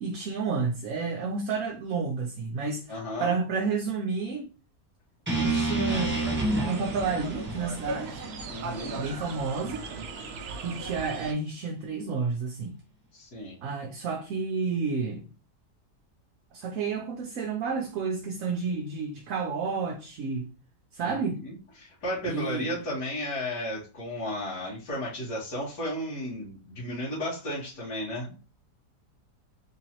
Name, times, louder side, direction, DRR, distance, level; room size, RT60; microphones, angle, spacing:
voice 1, 0.0-4.5 5.3-6.2 6.6-8.2 9.0-9.8 10.6-12.8 13.6-15.3 16.5-20.5 20.9-21.4 22.3-22.8, right 4 dB, 65° right, 0.8 m, -31 dB
voice 2, 2.9-3.3 8.5-9.0 13.1-13.6 21.0-28.3, left 1 dB, 80° left, 1.9 m, -34 dB
sound 1, 5.3-9.4, right 2 dB, 10° right, 1.0 m, -30 dB
sound 2, 5.9-11.3, right 3 dB, 90° right, 0.5 m, -38 dB
3.8 x 2.9 x 2.8 m
omnidirectional pair, 1.8 m